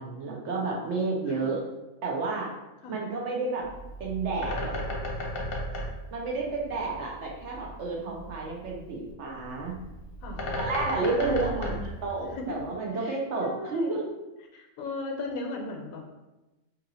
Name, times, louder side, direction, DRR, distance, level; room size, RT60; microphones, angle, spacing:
voice 1, 0.0-1.6 2.0-2.5 2.9-3.7 4.0-4.7 6.1-9.8 10.6-11.7 12.0-14.1, right 3 dB, 65° right, -2 dB, 0.8 m, -31 dB
Bird, 3.6-12.7, equal, 50° left, 0.8 m, -35 dB
voice 2, 11.1-11.9 12.3-12.6 12.9-13.9 14.5-16.1, left 2 dB, 75° left, 2 dB, 1.0 m, -37 dB
2.8 x 2.7 x 3.9 m, 1.0 s
omnidirectional pair, 1.5 m